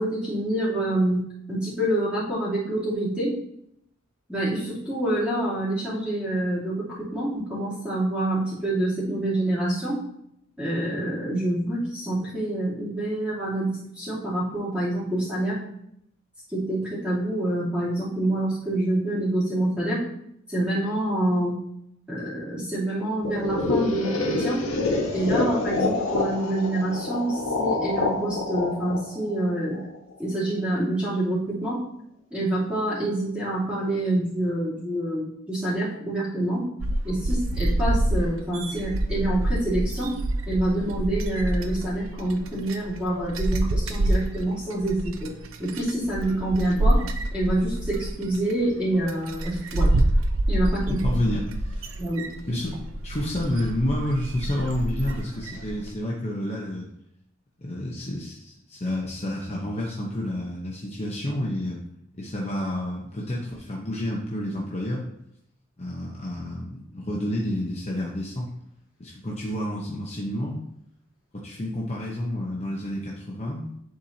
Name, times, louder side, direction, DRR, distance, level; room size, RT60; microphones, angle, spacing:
voice 1, 0.0-3.3 4.3-10.0 10.6-15.6 16.5-20.0 20.5-21.6 22.1-24.6 25.1-29.9 30.2-31.8 32.3-36.7 37.0-40.1 40.4-45.3 45.6-47.0 47.3-49.9 50.5-51.1 52.0-52.3, right 1 dB, 5° right, -10 dB, 2.9 m, -26 dB
sound 1, 23.2-30.1, left 3 dB, 85° left, 1.3 m, -27 dB
sound 2, 36.8-55.9, right 1 dB, 80° right, 0.6 m, -27 dB
voice 2, 51.0-51.9 52.5-52.7 53.0-56.9 57.6-61.8 62.2-65.0 65.8-68.5 69.0-70.6 71.3-73.7, left 1 dB, 30° left, -4 dB, 0.9 m, -29 dB
10.5 x 4.3 x 2.8 m, 0.76 s
head